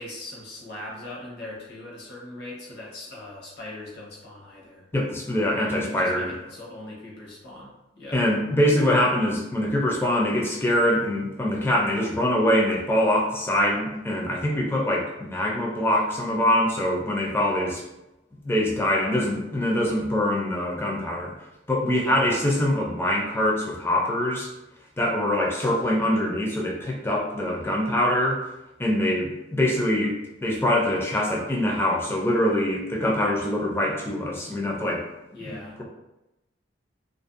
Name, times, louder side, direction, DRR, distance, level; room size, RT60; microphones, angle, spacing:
voice 1, 0.0-4.8 5.6-8.2 21.9-22.3 35.3-35.8, left 1 dB, 60° left, -4 dB, 0.8 m, -40 dB
voice 2, 4.9-6.3 8.1-17.8 18.4-21.3 21.7-24.5 25.0-28.4 28.8-35.0 35.3-35.8, left 1 dB, 15° left, -2 dB, 0.4 m, -24 dB
2.5 x 2.0 x 2.4 m, 0.96 s
head